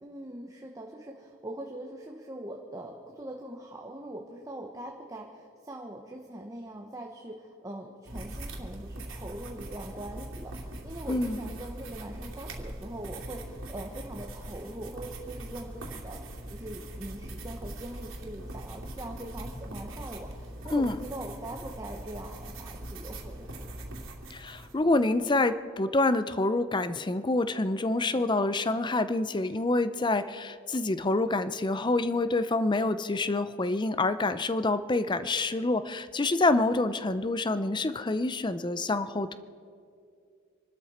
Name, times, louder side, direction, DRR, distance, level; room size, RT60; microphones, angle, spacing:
voice 1, 0.0-23.6, right 1 dB, 15° right, 1 dB, 1.0 m, -42 dB
sound 1, 8.1-24.7, right 1 dB, 80° right, 2.7 m, -41 dB
voice 2, 11.1-11.4 20.7-21.0 24.3-39.4, left 2 dB, 25° left, 13 dB, 0.5 m, -27 dB
26.0 x 12.5 x 4.3 m, 2.3 s
head